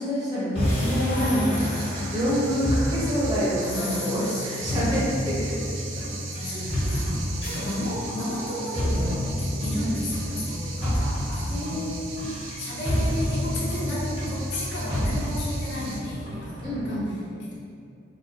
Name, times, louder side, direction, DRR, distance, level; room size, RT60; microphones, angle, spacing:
voice 1, 0.0-6.0 7.6-7.7 9.8-10.0 10.8-10.9 11.5-12.3 16.6-17.1, equal, 20° right, -9 dB, 0.5 m, -28 dB
sound 1, 0.5-16.9, equal, 30° left, 0.7 m, -29 dB
voice 2, 1.1-2.2 3.6-4.9 6.3-11.9 12.6-17.0 17.4-17.5, left 1 dB, 65° left, -5 dB, 0.5 m, -33 dB
sound 2, 1.5-16.0, right 3 dB, 80° right, 0.3 m, -39 dB
2.2 x 2.1 x 2.7 m, 2.4 s
head